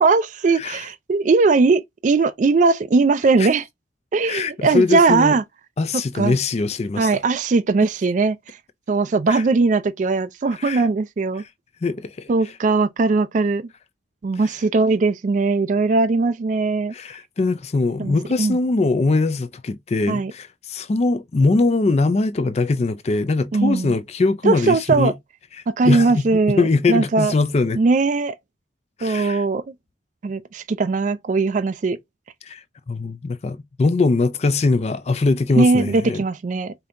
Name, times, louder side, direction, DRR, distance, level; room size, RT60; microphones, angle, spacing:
voice 1, 0.0-3.6 4.1-5.4 5.9-6.4 7.0-8.6 8.9-11.4 12.3-13.7 14.2-16.9 18.0-18.6 20.1-20.3 23.5-23.9 24.4-25.1 25.7-27.3 27.8-28.4 29.0-29.7 30.2-32.0 35.6-36.7, right 3 dB, 40° right, 0.3 m, -19 dB
voice 2, 0.6-0.9 3.4-3.5 4.3-5.4 5.8-7.2 9.3-9.4 10.6-10.8 11.4-11.5 11.8-12.3 14.4-14.5 16.9-25.1 25.5-27.8 29.0-29.4 32.4-36.2, left 3 dB, 35° left, 0.4 m, -22 dB
5.1 x 2.8 x 2.5 m
head